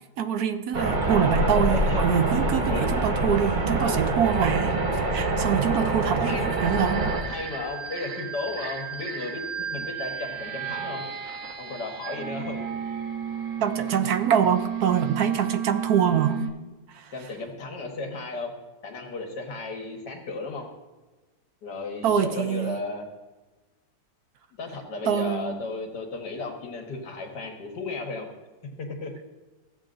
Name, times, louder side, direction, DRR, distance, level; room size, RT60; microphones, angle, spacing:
voice 1, 0.2-4.8 5.1-7.2 13.6-16.4 16.9-17.1 22.0-22.8 25.1-25.6, right 8 dB, 70° right, 9 dB, 1.1 m, -25 dB
sound 1, 0.7-7.2, right 2 dB, 35° right, 0.9 m, -25 dB
sound 2, 4.2-16.5, right 7 dB, 55° right, 1.2 m, -33 dB
voice 2, 7.3-11.0 11.6-12.6 17.1-18.5 18.8-20.7 21.6-23.1 24.6-28.3 28.8-29.1, left 3 dB, 80° left, 2 dB, 2.0 m, -34 dB
15.0 x 7.7 x 2.5 m, 1.2 s
omnidirectional pair, 1.8 m